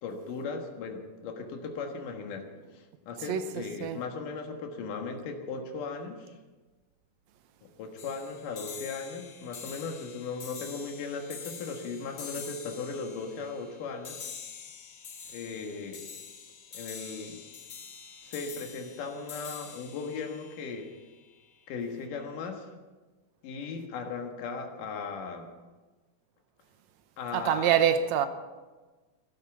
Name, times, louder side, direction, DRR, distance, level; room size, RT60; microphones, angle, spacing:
voice 1, 0.0-2.5 2.7-6.3 7.6-14.2 15.3-16.0 16.7-17.4 18.2-20.9 21.7-22.7 23.4-25.5 27.2-27.7, left 4 dB, 85° left, 3.1 m, -37 dB
voice 2, 3.3-4.0 27.3-28.3, right 9 dB, 70° right, 2.0 m, -26 dB
sound 1, 8.0-21.4, left 6 dB, 65° left, 0.9 m, -45 dB
14.5 x 12.0 x 7.2 m
omnidirectional pair, 3.7 m